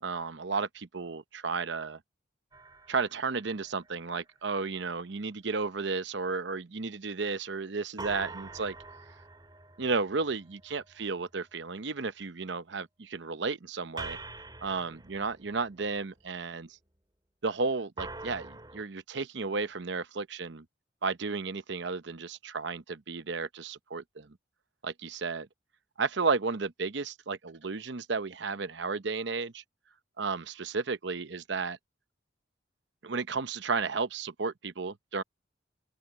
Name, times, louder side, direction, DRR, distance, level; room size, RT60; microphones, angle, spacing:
voice 1, 0.0-2.0 2.9-8.7 9.8-14.2 14.6-16.8 17.4-20.6 21.0-24.4 24.8-25.5 26.0-29.6 30.2-31.8 33.0-35.2, right 4 dB, 65° right, 0.8 m, -33 dB
sound 1, 2.5-4.3 8.0-11.2 14.0-16.2 18.0-18.8, right 3 dB, 20° right, 2.3 m, -45 dB
open air
head